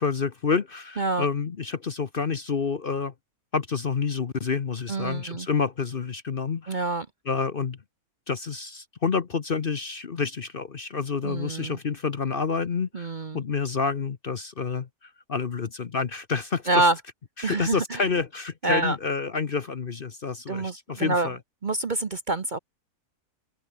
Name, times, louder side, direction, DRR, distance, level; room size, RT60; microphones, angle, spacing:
voice 1, 0.0-3.1 3.5-6.8 7.3-7.8 8.3-16.7 17.4-21.4, left 5 dB, 40° left, 1.0 m, -28 dB
voice 2, 1.0-1.3 4.9-5.5 6.7-7.1 11.2-11.8 12.9-13.4 16.7-17.0 17.4-18.0 18.6-19.0 20.5-21.3 21.6-22.6, right 2 dB, 35° right, 0.9 m, -26 dB
open air
omnidirectional pair, 1.6 m